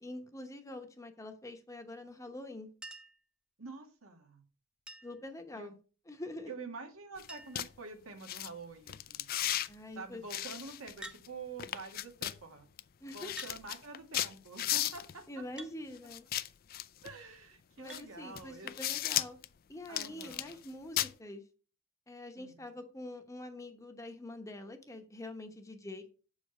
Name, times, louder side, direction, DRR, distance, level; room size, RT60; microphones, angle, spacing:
voice 1, 0.0-2.7 5.0-5.8 6.1-6.5 9.7-10.2 13.0-13.4 15.3-16.3 17.8-19.4 19.7-21.4 22.1-26.1, left 1 dB, 15° left, 5 dB, 0.9 m, -45 dB
Chink clink, 2.8-3.3 4.9-5.3 6.6-6.7 6.9-7.0 7.3-7.7 8.5-8.9 11.0-11.3 12.3-12.4 13.4-13.6 15.6-15.8 17.9-18.1 19.5-19.6, right 1 dB, 5° right, 0.6 m, -48 dB
voice 2, 3.6-4.4 5.5-5.7 6.5-9.3 10.0-12.7 13.1-15.2 17.0-18.7 19.9-20.6 22.4-22.9, right 4 dB, 90° right, 4 dB, 1.7 m, -47 dB
sound 1, 7.2-7.3 7.6-7.7 8.2-8.5 8.9-9.7 10.3-11.3 11.6-12.4 12.8-12.9 13.1-15.1 16.1-17.1 17.9-18.0 18.4-19.5 19.9-20.7 21.0-21.1, left 13 dB, 45° left, 0.4 m, -35 dB
7.3 x 4.9 x 5.3 m, 0.38 s
head